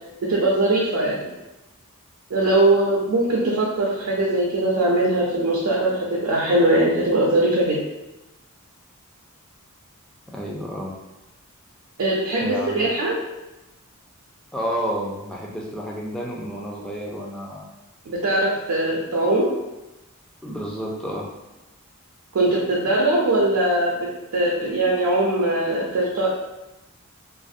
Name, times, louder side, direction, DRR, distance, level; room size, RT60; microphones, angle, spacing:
voice 1, 0.3-1.3 2.3-7.8 12.0-13.2 18.1-19.5 22.3-26.3, right 1 dB, 70° right, -4 dB, 0.4 m, -21 dB
voice 2, 10.3-10.9 12.4-12.9 14.5-17.7 20.4-21.3, equal, 5° left, -3 dB, 0.3 m, -30 dB
2.5 x 2.0 x 2.4 m, 1.0 s
head